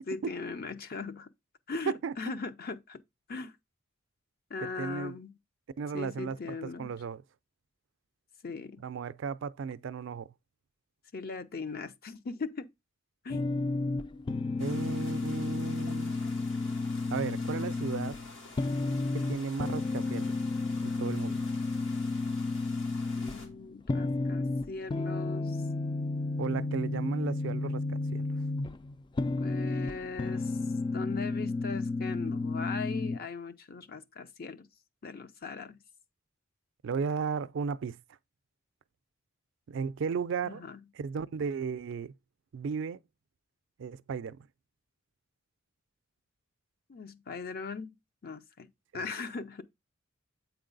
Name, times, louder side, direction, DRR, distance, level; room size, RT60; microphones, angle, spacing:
voice 1, 0.1-1.3 1.7-3.0 3.3-3.5 4.5-5.3 5.9-6.9 8.4-8.8 11.1-12.7 13.2-13.5 23.2-25.6 29.4-30.6 30.9-34.7 35.0-35.8 40.4-40.8 46.9-47.9 48.2-48.7 48.9-49.6, left 4 dB, 50° left, 0.7 m, -39 dB
voice 2, 4.8-5.1 5.8-7.2 8.8-10.3 14.6-16.1 17.1-18.2 19.1-20.4 20.8-21.4 26.4-28.2 36.8-38.0 39.7-40.6 40.9-42.1 42.5-43.0 43.8-44.5 48.9-49.1, right 5 dB, 65° right, 0.4 m, -35 dB
sound 1, 13.3-33.2, left 3 dB, 25° left, 0.3 m, -32 dB
sound 2, 14.6-23.5, left 3 dB, 75° left, 2.2 m, -50 dB
8.0 x 4.6 x 3.8 m
head